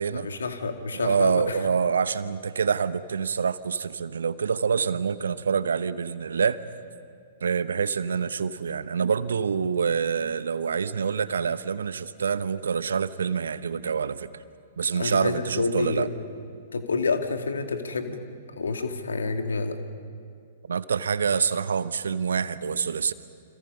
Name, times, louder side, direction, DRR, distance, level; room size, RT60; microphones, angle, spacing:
voice 1, 0.1-1.6 14.9-16.1 16.7-18.2 18.6-19.8, left 4 dB, 70° left, 6 dB, 2.1 m, -28 dB
voice 2, 0.9-6.6 7.4-14.3 14.8-16.1 20.7-23.1, right 6 dB, 70° right, 15 dB, 0.9 m, -26 dB
29.0 x 26.5 x 5.5 m, 2.3 s
figure-of-eight pair, 110°, 0 cm